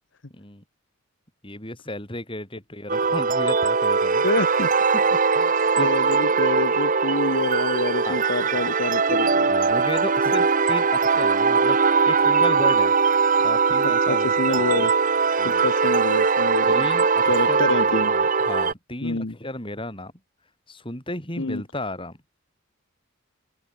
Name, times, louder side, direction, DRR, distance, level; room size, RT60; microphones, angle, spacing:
voice 1, 0.3-0.6 1.4-4.2 4.9-6.3 8.0-8.2 9.5-12.9 13.4-14.9 15.4-15.6 16.7-20.1 20.7-22.2, left 1 dB, 25° left, 7.8 m, -34 dB
sound 1, 2.9-18.7, right 5 dB, 40° right, 1.0 m, -20 dB
voice 2, 4.2-4.7 5.8-9.5 13.8-14.9 15.4-16.9 17.2-18.1 19.0-19.3 21.4-21.6, left 3 dB, 55° left, 1.2 m, -27 dB
open air
head